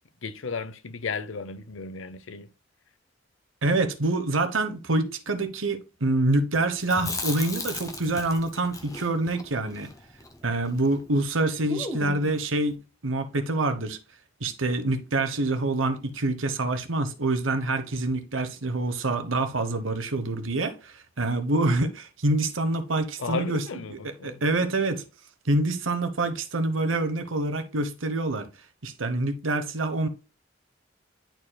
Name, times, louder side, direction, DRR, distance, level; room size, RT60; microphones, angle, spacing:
voice 1, 0.2-2.5 23.2-24.4, left 4 dB, 75° left, 0.7 m, -34 dB
voice 2, 3.6-9.9 10.4-14.0 14.4-23.6 23.9-25.0 25.4-28.5 28.8-30.1, right 2 dB, 85° right, 1.1 m, -26 dB
Chewing mastication, 6.8-11.0 11.3-11.4 11.7-12.4, left 2 dB, 15° left, 1.0 m, -36 dB
10.5 x 4.5 x 2.3 m
head